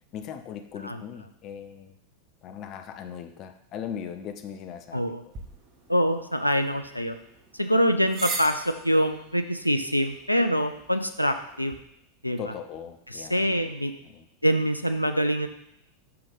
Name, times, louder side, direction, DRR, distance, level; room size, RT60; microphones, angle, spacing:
voice 1, 0.1-1.9 2.4-5.2 12.4-13.7 14.0-14.2, left 8 dB, 35° left, 7 dB, 0.6 m, -39 dB
voice 2, 4.9-5.2 5.9-7.2 7.5-11.8 12.2-12.5 13.1-13.9 14.4-15.5, equal, 90° left, 8 dB, 0.4 m, -25 dB
sound 1, 5.3-11.8, right 3 dB, 30° right, 1.3 m, -41 dB
5.6 x 5.1 x 4.0 m, 0.76 s
figure-of-eight pair, 90°, 0 cm